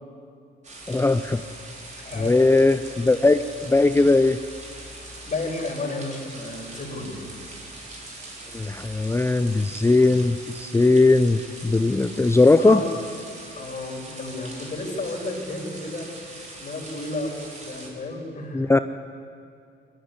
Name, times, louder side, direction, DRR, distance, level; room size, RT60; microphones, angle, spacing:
sound 1, 0.6-17.9, right 2 dB, 35° right, 4.8 m, -41 dB
voice 1, 0.9-1.4 2.1-4.4 8.5-12.8 18.5-18.8, left 3 dB, 15° left, 10 dB, 0.6 m, -19 dB
voice 2, 2.0-2.4 5.3-7.2 12.6-12.9 13.6-18.7, left 2 dB, 40° left, 0 dB, 5.6 m, -32 dB
21.5 x 13.5 x 9.7 m, 2.4 s
cardioid pair, 90°, 20 cm